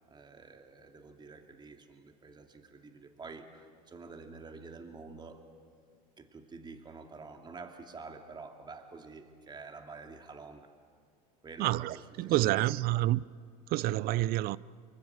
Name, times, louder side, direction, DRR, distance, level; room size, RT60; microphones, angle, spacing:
voice 1, 0.1-5.4 6.2-10.7 11.4-12.7, right 4 dB, 20° right, 2.4 m, -48 dB
voice 2, 11.6-13.2 13.7-14.6, right 16 dB, 50° right, 0.6 m, -28 dB
25.0 x 24.0 x 8.0 m
supercardioid pair, 110°, 20 cm